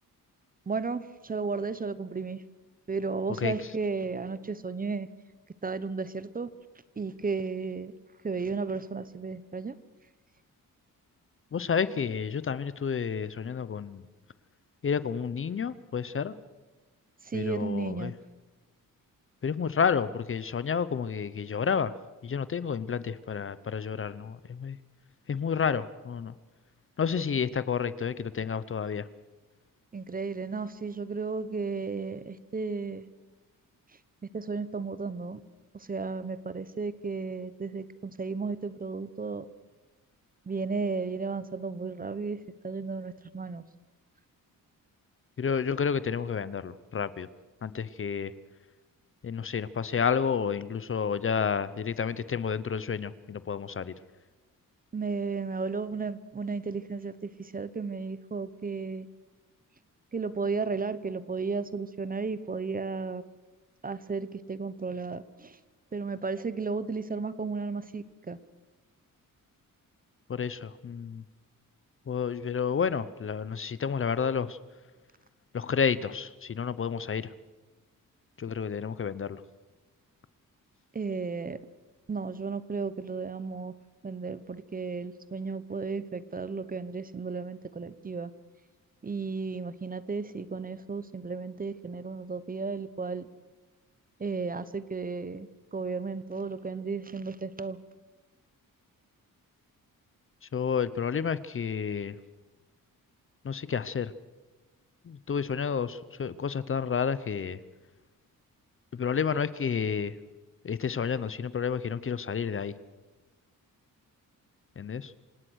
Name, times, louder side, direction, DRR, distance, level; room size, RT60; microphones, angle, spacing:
voice 1, 0.7-2.4 2.9-5.1 5.6-6.5 7.0-7.9 8.2-9.7 17.2-18.1 29.9-33.0 34.3-35.4 35.7-39.5 40.5-43.6 54.9-59.1 60.1-63.2 63.8-65.6 65.9-68.4 80.9-81.6 82.1-83.7 84.0-88.3 89.0-93.3 94.2-97.8, right 4 dB, 25° right, 15 dB, 0.9 m, -34 dB
voice 2, 11.5-14.0 14.8-16.3 17.3-18.1 19.4-21.9 22.2-24.8 25.3-26.3 27.0-29.1 45.4-47.3 47.6-48.3 49.2-53.9 70.3-71.2 72.1-74.6 75.5-77.3 78.4-79.4 100.5-102.2 103.4-104.1 105.0-107.6 108.9-110.2 110.6-112.7 114.8-115.1, left 6 dB, 40° left, 16 dB, 0.7 m, -30 dB
27.0 x 18.0 x 6.4 m, 1.1 s
wide cardioid pair, 130°, 34 cm